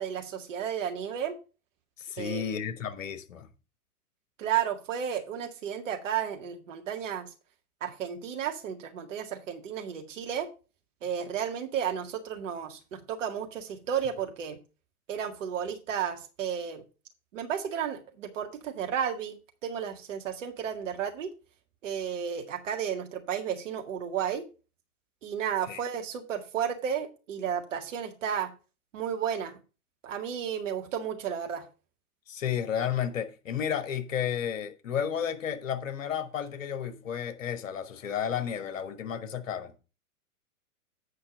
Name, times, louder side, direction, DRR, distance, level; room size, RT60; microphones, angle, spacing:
voice 1, 0.0-1.4 2.2-2.7 4.4-7.3 7.8-10.5 11.0-14.6 15.1-16.8 17.3-21.3 21.8-24.4 25.2-28.5 28.9-29.6 30.0-31.6, right 8 dB, 55° right, 1.9 m, -33 dB
voice 2, 2.0-3.5 25.7-25.8 32.3-39.7, left 8 dB, 55° left, 1.4 m, -32 dB
8.7 x 5.0 x 5.3 m
figure-of-eight pair, 105°, 45 cm